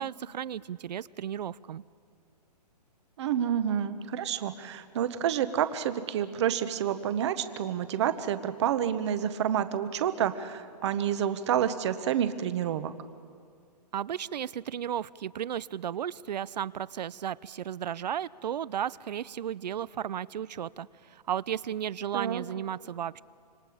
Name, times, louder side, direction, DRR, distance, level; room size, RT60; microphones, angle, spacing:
voice 1, 0.0-1.8 13.9-23.2, right 9 dB, 80° right, 21 dB, 0.5 m, -34 dB
voice 2, 3.2-12.9 22.1-22.4, right 9 dB, 40° right, 12 dB, 1.0 m, -29 dB
26.5 x 24.0 x 5.0 m, 2.2 s
hypercardioid pair, 160°, 21 cm